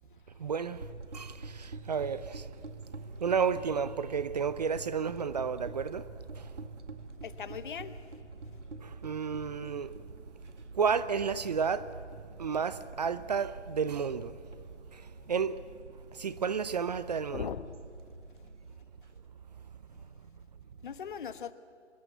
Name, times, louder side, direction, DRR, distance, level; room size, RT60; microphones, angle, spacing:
voice 1, 0.4-0.8 1.1-2.5 3.2-6.1 6.4-6.5 8.8-9.9 10.8-11.9 12.4-14.3 15.3-15.6 16.1-17.5, right 6 dB, 35° right, 0.7 m, -31 dB
sound 1, 0.7-19.2, right 3 dB, 85° right, 2.0 m, -46 dB
voice 2, 7.2-8.0 17.3-17.7 20.8-21.5, left 7 dB, 45° left, 1.2 m, -38 dB
25.0 x 21.0 x 8.1 m
figure-of-eight pair, 150°, 35 cm